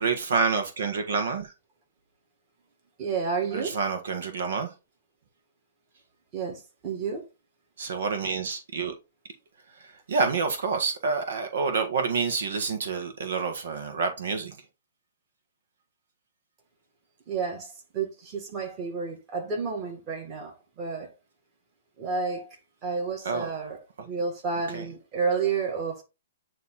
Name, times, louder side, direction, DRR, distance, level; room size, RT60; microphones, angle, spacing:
voice 1, 0.0-1.5 3.5-4.7 7.8-8.9 9.8-14.6 23.2-23.5 24.7-24.8, right 4 dB, 65° right, 1.5 m, -28 dB
voice 2, 3.0-3.7 6.3-7.2 17.3-21.1 22.0-22.5 22.8-23.8 24.0-26.0, right 5 dB, 20° right, 2.0 m, -30 dB
9.3 x 3.1 x 4.1 m
hypercardioid pair, 170°, 0 cm